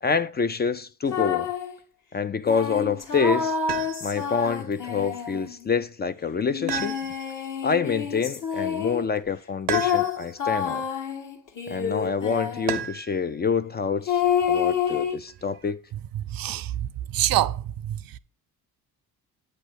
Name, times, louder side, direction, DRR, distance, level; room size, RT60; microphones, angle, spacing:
voice 1, 0.0-1.5 2.1-3.5 4.0-7.0 7.6-10.8 11.7-14.2 14.5-15.8, left 5 dB, 25° left, 0.4 m, -26 dB
sound 1, 1.1-1.7 2.4-5.7 6.5-9.1 9.7-12.8 14.1-15.2, left 7 dB, 55° left, 1.5 m, -28 dB
sound 2, 3.7-4.3 6.7-7.5 9.7-10.4 12.7-13.2 14.9-15.5, right 9 dB, 90° right, 0.9 m, -33 dB
voice 2, 16.1-18.2, right 13 dB, 60° right, 0.5 m, -27 dB
8.0 x 3.1 x 6.2 m
supercardioid pair, 70°, 39 cm